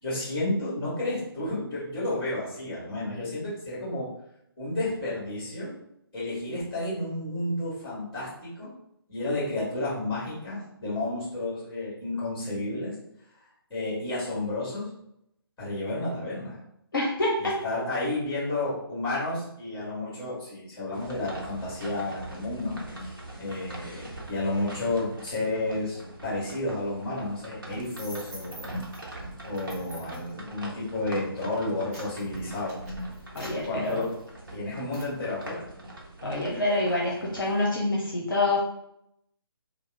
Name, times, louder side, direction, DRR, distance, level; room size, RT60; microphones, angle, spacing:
voice 1, 0.0-4.1 4.6-5.7 6.1-8.7 9.1-12.9 13.7-14.9 15.6-16.6 17.6-28.8 29.4-32.8 33.6-34.2 34.5-35.7, left 2 dB, 15° left, -8 dB, 1.4 m, -31 dB
voice 2, 16.9-17.6 33.3-34.0 36.2-38.6, left 2 dB, 55° left, -3 dB, 0.7 m, -26 dB
sound 1, 20.9-37.6, right 1 dB, 55° right, 0.8 m, -42 dB
sound 2, 27.8-29.0 29.5-30.3 30.9-31.2 31.6-34.5 34.9-35.1, right 1 dB, 30° right, 1.3 m, -46 dB
2.8 x 2.0 x 3.4 m, 0.77 s
figure-of-eight pair, 145°, 13 cm